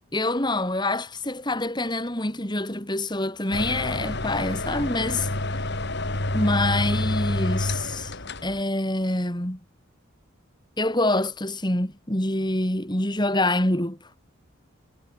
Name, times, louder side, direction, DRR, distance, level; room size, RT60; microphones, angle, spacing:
voice 1, 0.1-5.3 6.3-8.1 8.4-9.6 10.8-14.0, left 1 dB, 20° left, 2.8 m, -26 dB
sound 1, 3.5-8.6, left 1 dB, 50° left, 2.8 m, -28 dB
head